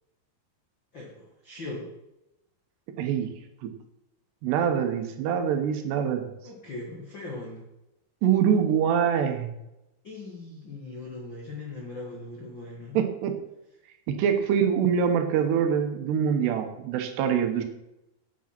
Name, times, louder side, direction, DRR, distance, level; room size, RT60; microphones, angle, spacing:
voice 1, 0.9-1.9 6.4-7.6 10.0-13.0, left 2 dB, 65° left, -2 dB, 1.1 m, -39 dB
voice 2, 3.0-3.3 3.6-3.7 4.4-6.2 8.2-9.5 12.9-13.4 14.1-17.6, right 8 dB, 75° right, 6 dB, 3.0 m, -24 dB
9.1 x 8.3 x 5.9 m, 0.90 s
omnidirectional pair, 5.1 m